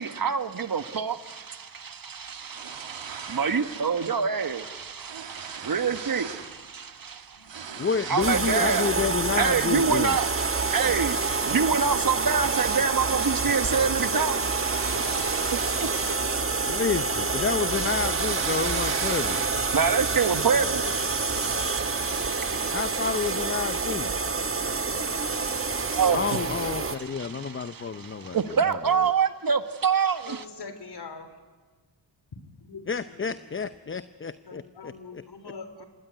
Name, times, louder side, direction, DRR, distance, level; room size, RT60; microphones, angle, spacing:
voice 1, 0.0-8.9 9.4-16.2 19.1-23.8 25.3-26.4 26.8-30.4, right 6 dB, 45° right, 1.5 m, -28 dB
sound 1, 2.2-3.9 4.2-4.5 4.7-6.6 6.8-9.0 9.4-11.1 11.5-11.8 12.2-16.7 17.1-19.8, right 7 dB, 65° right, 2.4 m, -39 dB
voice 2, 7.8-10.2 16.7-19.5 22.7-24.1 26.1-28.8 32.9-35.2, left 5 dB, 25° left, 0.7 m, -29 dB
sound 2, 8.2-27.0, right 4 dB, 25° right, 1.5 m, -27 dB
voice 3, 30.2-31.4 32.6-33.6 34.4-35.8, left 4 dB, 55° left, 3.5 m, -43 dB
26.0 x 18.5 x 9.4 m
cardioid pair, 65°, 47 cm